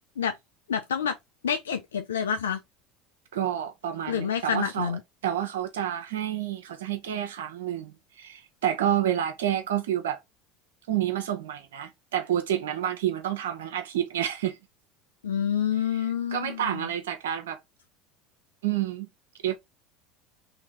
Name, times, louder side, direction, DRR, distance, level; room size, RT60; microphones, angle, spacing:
voice 1, 0.7-1.1 1.4-2.6 4.1-5.0 15.2-16.9, left 8 dB, 85° left, 0.4 m, -28 dB
voice 2, 3.3-4.9 5.2-10.2 10.9-14.6 15.9-17.6 18.6-19.1 19.4-19.6, right 10 dB, 80° right, 0.9 m, -29 dB
2.9 x 2.8 x 3.5 m
hypercardioid pair, 80°, 0 cm